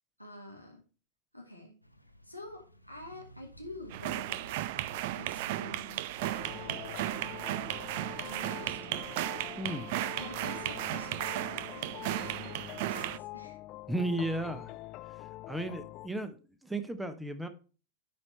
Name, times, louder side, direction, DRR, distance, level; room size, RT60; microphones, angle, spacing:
voice 1, 0.2-0.8 1.3-1.7 2.2-6.1 6.6-7.4 8.2-9.1 9.4-9.6 10.1-13.6, left 1 dB, 90° right, 3 dB, 2.2 m, -48 dB
sound 1, 1.8-9.3, equal, 90° left, 0.8 m, -55 dB
sound 2, 3.9-13.2, right 16 dB, 50° right, 0.4 m, -35 dB
sound 3, 6.2-16.1, left 17 dB, 40° left, 0.3 m, -45 dB
voice 2, 9.6-10.0 13.9-14.7 15.1-17.5, right 1 dB, 5° right, 10 dB, 0.9 m, -35 dB
10.5 x 4.5 x 4.3 m, 0.36 s
figure-of-eight pair, 90°, 0 cm